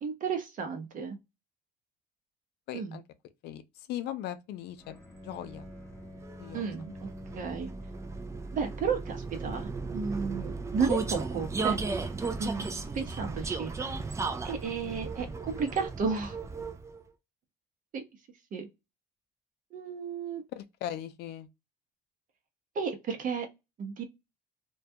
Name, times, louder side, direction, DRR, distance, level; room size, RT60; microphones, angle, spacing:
voice 1, 0.0-1.2 2.7-3.0 6.5-7.1 7.3-7.7 8.5-11.8 12.4-13.8 14.4-16.4 17.9-18.0 18.5-18.7 19.7-20.4 22.7-23.5 23.8-24.0, right 5 dB, 50° right, 0.7 m, -33 dB
voice 2, 2.7-3.0 3.4-3.6 3.9-5.0 5.2-5.7 6.4-6.6 14.7-14.9 20.6-21.5, left 11 dB, 75° left, 0.4 m, -38 dB
Bowed string instrument, 4.8-8.8, left 1 dB, 10° left, 0.8 m, -47 dB
Vehicle, 5.1-17.0, right 4 dB, 15° right, 0.3 m, -36 dB
2.2 x 2.2 x 2.7 m
cardioid pair, 110°, 17 cm